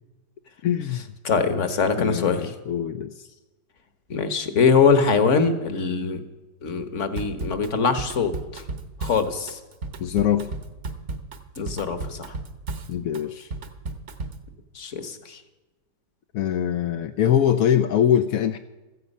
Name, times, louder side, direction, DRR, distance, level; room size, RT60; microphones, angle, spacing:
voice 1, 0.6-1.1 2.0-3.3 10.0-10.5 12.9-13.5 16.3-18.6, left 9 dB, 65° left, 8 dB, 0.9 m, -23 dB
voice 2, 1.2-2.5 4.1-6.2 6.6-8.6 9.0-9.6 11.6-12.3 14.7-15.4, left 5 dB, 45° left, 9 dB, 1.5 m, -23 dB
Drum kit / Drum, 7.2-14.5, right 3 dB, 45° right, 1.2 m, -34 dB
16.0 x 14.0 x 5.5 m, 1.2 s
omnidirectional pair, 2.0 m